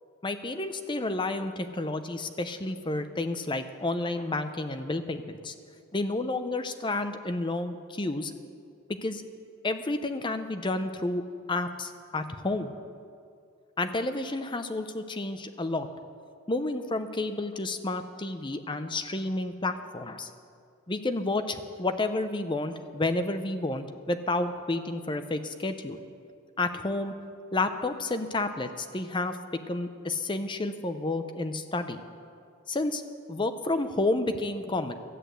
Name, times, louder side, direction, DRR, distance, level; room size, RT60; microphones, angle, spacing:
voice 1, 0.2-5.5 5.9-8.3 8.9-9.2 9.6-11.2 11.5-12.7 13.8-15.9 16.5-20.3 20.9-26.0 26.6-27.1 27.5-29.4 29.7-32.0 32.7-33.0 33.3-34.9, left 2 dB, 20° left, 9 dB, 0.6 m, -30 dB
13.5 x 8.1 x 8.0 m, 2.3 s
head